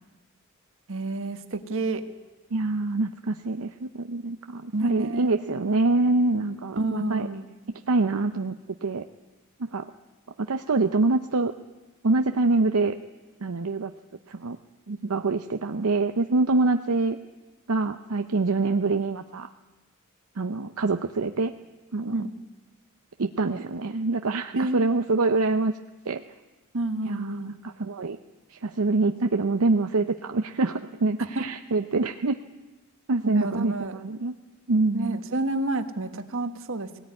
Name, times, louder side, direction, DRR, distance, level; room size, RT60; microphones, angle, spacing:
voice 1, 0.9-2.0 4.7-5.3 6.8-7.5 22.1-22.3 24.6-24.9 26.7-27.5 31.2-31.4 33.2-34.0 34.9-37.0, right 2 dB, 65° right, 8 dB, 1.5 m, -29 dB
voice 2, 2.5-7.3 7.9-9.1 9.6-9.9 10.4-11.5 12.0-12.9 13.4-13.9 14.3-14.6 14.9-17.2 17.7-19.5 20.4-21.5 21.9-22.1 23.2-25.7 26.1-26.2 27.1-28.2 28.5-32.4 33.1-34.3 34.7-35.2, right 3 dB, 80° right, 7 dB, 0.7 m, -25 dB
19.0 x 18.0 x 9.7 m, 1.2 s
head